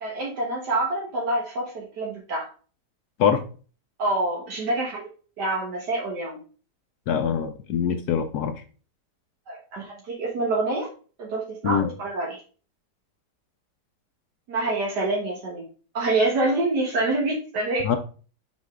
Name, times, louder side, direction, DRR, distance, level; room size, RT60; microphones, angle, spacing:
voice 1, 0.0-2.5 4.0-5.1 5.4-6.4 9.5-10.9 11.2-12.4 14.5-15.7 15.9-17.9, right 2 dB, 75° right, -1 dB, 1.9 m, -26 dB
voice 2, 7.1-8.6 11.6-11.9 17.8-18.0, left 7 dB, 70° left, 7 dB, 1.2 m, -23 dB
6.2 x 5.3 x 3.6 m, 0.37 s
omnidirectional pair, 1.8 m